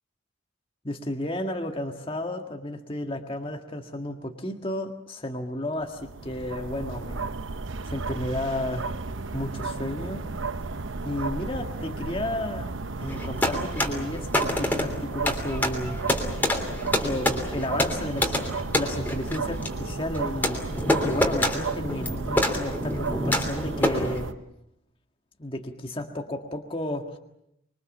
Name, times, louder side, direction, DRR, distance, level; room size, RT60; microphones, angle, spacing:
voice 1, 0.8-7.3 7.9-8.9 9.3-10.2 11.0-16.0 17.0-20.6 21.0-24.3 25.4-27.2, left 1 dB, 25° left, 3 dB, 1.7 m, -32 dB
sound 1, 5.8-24.3, right 3 dB, 70° right, 0.9 m, -33 dB
sound 2, 13.1-24.2, left 1 dB, 10° left, 3.1 m, -27 dB
25.5 x 24.0 x 7.2 m, 0.81 s
head